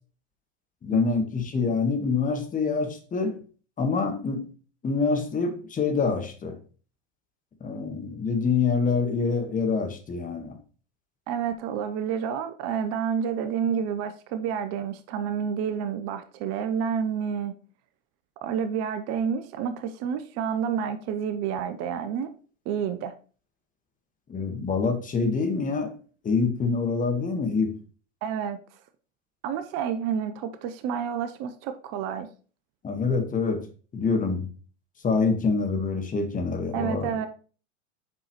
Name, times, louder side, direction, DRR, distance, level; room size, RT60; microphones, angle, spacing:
voice 1, 0.8-3.4 3.8-4.5 4.8-6.6 7.6-10.6 24.3-25.9 26.2-27.8 32.8-33.7 33.9-34.5 35.0-37.3, left 4 dB, 20° left, 1.5 m, -26 dB
voice 2, 11.3-17.6 18.4-22.3 22.7-23.1 28.2-28.6 29.4-32.3 36.7-37.3, right 7 dB, 45° right, 0.7 m, -29 dB
7.6 x 5.5 x 3.0 m
hypercardioid pair, 95°, 37 cm